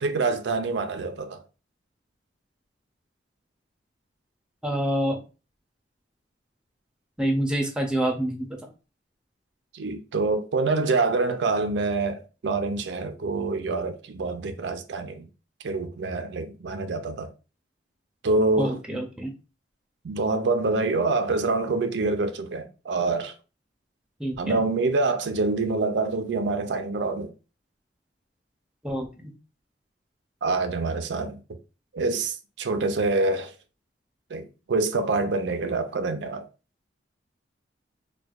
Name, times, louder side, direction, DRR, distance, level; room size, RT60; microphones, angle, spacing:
voice 1, 0.0-1.4 9.7-15.3 15.6-17.3 18.2-18.8 20.0-23.3 24.4-27.3 30.4-31.4 31.9-33.5 34.3-36.5, right 3 dB, 70° right, 0.4 m, -26 dB
voice 2, 4.6-5.2 7.2-8.6 18.6-19.3 24.2-24.6 28.8-29.3, right 1 dB, 5° right, 0.6 m, -27 dB
4.5 x 2.2 x 2.3 m
head